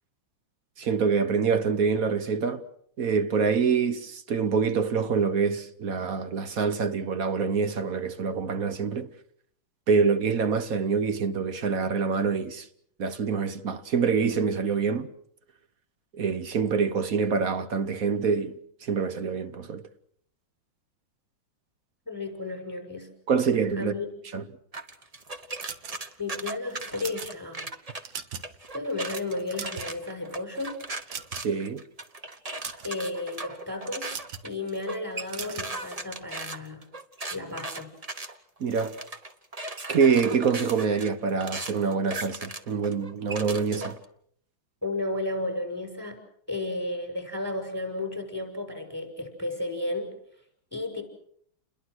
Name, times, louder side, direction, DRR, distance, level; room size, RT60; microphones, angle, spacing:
voice 1, 0.8-2.6 3.0-9.1 9.9-12.7 13.0-15.1 16.1-19.8 23.3-23.9 24.3-24.4 31.4-31.8 38.6-38.9 39.9-44.0, right 5 dB, 50° right, 1.4 m, -26 dB
voice 2, 22.1-23.1 23.8-24.1 26.2-27.6 28.7-30.7 32.8-34.2 34.4-36.8 37.3-37.9 44.8-46.2 46.5-50.2 50.7-51.0, left 2 dB, 5° right, 6.0 m, -33 dB
sound 1, 24.7-28.0 28.4-44.0, right 2 dB, 25° right, 0.9 m, -38 dB
sound 2, 25.6-26.3 26.8-27.3 27.9-28.6 28.9-29.0 29.4-30.1 31.1-31.6 32.4-33.0 34.1-34.5 35.3-35.7, right 7 dB, 65° right, 2.0 m, -38 dB
29.0 x 21.5 x 6.3 m
omnidirectional pair, 2.3 m